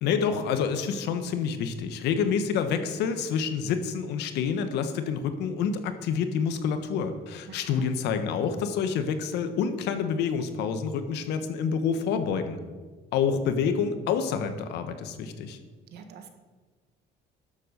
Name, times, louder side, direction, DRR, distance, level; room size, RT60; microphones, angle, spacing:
voice 1, 0.0-12.6 13.1-15.6, left 6 dB, 85° left, 9 dB, 1.3 m, -28 dB
voice 2, 7.5-7.9 15.9-16.3, right 7 dB, 75° right, 7 dB, 1.6 m, -46 dB
12.0 x 7.6 x 6.5 m, 1.4 s
cardioid pair, 110°, 17 cm